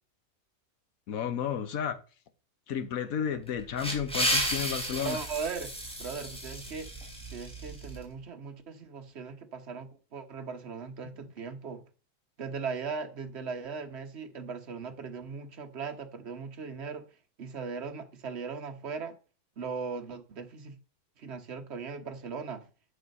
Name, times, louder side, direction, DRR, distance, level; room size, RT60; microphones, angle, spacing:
voice 1, 1.1-2.0 2.7-5.2 11.0-11.1, left 8 dB, 70° left, 1.4 m, -32 dB
sound 1, 3.5-8.0, equal, 5° left, 3.2 m, -33 dB
voice 2, 5.0-5.7 6.0-6.9 7.3-11.8 12.4-17.1 17.4-19.1 19.6-20.7 21.2-22.7, right 5 dB, 50° right, 1.4 m, -38 dB
8.7 x 7.1 x 5.4 m
omnidirectional pair, 1.6 m